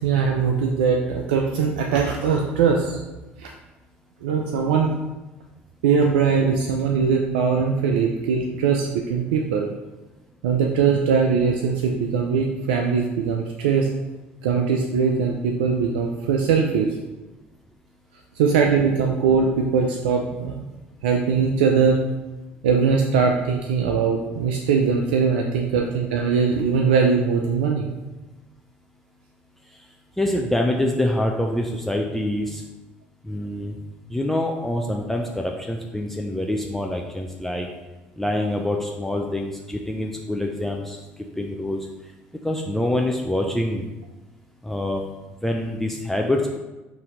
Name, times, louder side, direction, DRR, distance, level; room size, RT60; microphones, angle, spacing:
voice 1, 0.0-3.0 3.4-3.5 4.2-4.9 5.8-9.7 10.4-13.9 14.4-17.0 18.4-20.7 21.0-22.0 22.6-27.9, right 5 dB, 85° right, 1 dB, 0.4 m, -21 dB
voice 2, 30.2-32.6 33.2-33.8 34.1-37.7 38.2-41.0 41.4-41.9 42.4-43.9 44.6-45.1 45.4-46.6, left 1 dB, 5° left, 1 dB, 0.5 m, -25 dB
4.2 x 2.7 x 3.7 m, 1.1 s
hypercardioid pair, 70°, 6 cm